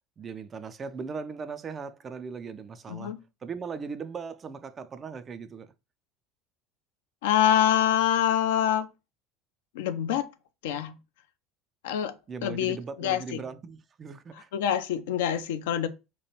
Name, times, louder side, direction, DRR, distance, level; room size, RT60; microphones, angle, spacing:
voice 1, 0.2-3.2 3.4-5.7 12.3-14.5, right 5 dB, 30° right, 0.3 m, -38 dB
voice 2, 2.9-3.2 7.2-8.9 9.7-10.3 10.6-11.0 11.8-13.4 14.5-15.9, left 10 dB, 65° left, 0.4 m, -26 dB
3.0 x 2.2 x 3.0 m
figure-of-eight pair, 70°, 0 cm